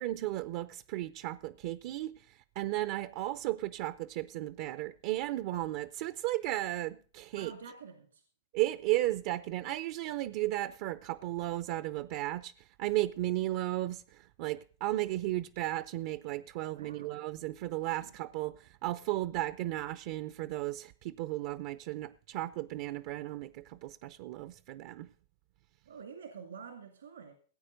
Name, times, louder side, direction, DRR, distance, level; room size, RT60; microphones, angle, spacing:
voice 1, 0.0-7.5 8.5-25.1, right 16 dB, 55° right, 0.6 m, -35 dB
voice 2, 7.3-8.2 16.7-17.2 18.0-18.1 25.9-27.3, right 6 dB, 90° right, 2.2 m, -48 dB
17.5 x 8.7 x 5.1 m
hypercardioid pair, 115°, 0 cm